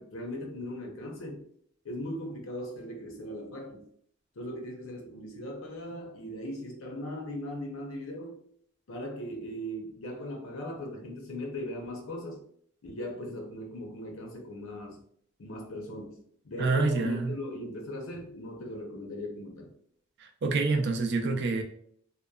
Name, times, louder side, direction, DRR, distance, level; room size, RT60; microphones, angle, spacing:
voice 1, 0.0-1.4 1.8-3.8 4.4-8.4 8.9-12.4 12.8-15.0 15.4-19.7, left 1 dB, 75° left, 1 dB, 0.7 m, -38 dB
voice 2, 16.6-17.3 20.2-21.6, right 3 dB, 55° right, 4 dB, 0.4 m, -27 dB
2.8 x 2.1 x 2.3 m, 0.62 s
head